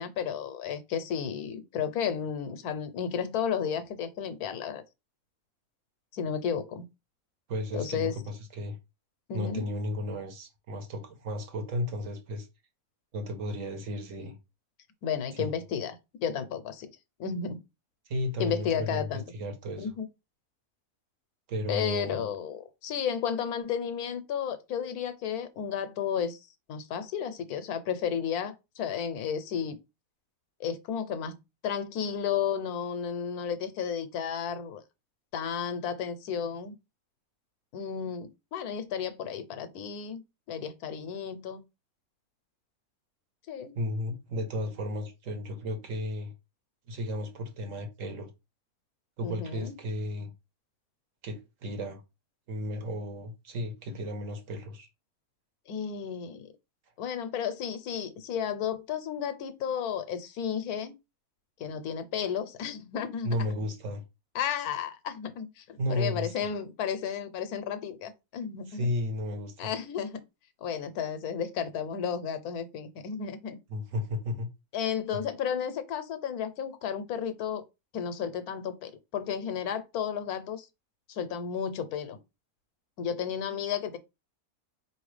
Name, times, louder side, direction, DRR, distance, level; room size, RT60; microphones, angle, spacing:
voice 1, 0.0-4.8 6.1-6.8 7.7-8.1 9.3-9.6 15.0-16.9 17.2-17.6 18.4-19.2 19.8-20.1 21.7-29.8 30.6-31.4 31.6-34.8 35.3-36.7 37.7-40.2 40.5-41.6 43.5-43.7 49.2-49.8 55.7-56.5 57.0-61.0 61.6-63.5 64.3-68.9 69.6-70.2 70.6-73.6 74.7-77.6 77.9-80.7 81.1-82.2 83.0-84.0, left 7 dB, 90° left, 1.2 m, -33 dB
voice 2, 7.5-8.8 9.3-12.5 13.1-14.4 15.3-15.5 18.1-19.1 19.3-19.9 21.5-22.3 43.7-46.3 46.9-48.3 49.2-50.3 51.2-52.0 52.5-54.9 63.2-64.0 65.8-66.5 68.7-69.7 73.7-74.5 75.1-75.2, left 1 dB, 60° right, 1.3 m, -34 dB
4.2 x 3.1 x 3.2 m
omnidirectional pair, 1.6 m